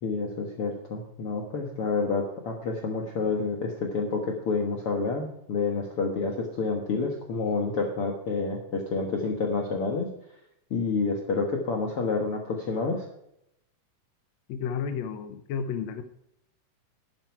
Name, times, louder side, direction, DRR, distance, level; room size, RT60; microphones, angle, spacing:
voice 1, 0.0-10.1 10.7-13.0, left 4 dB, 50° left, 2 dB, 2.0 m, -29 dB
voice 2, 14.5-16.0, left 7 dB, 70° left, 9 dB, 1.9 m, -32 dB
12.0 x 9.8 x 4.6 m, 0.78 s
omnidirectional pair, 3.8 m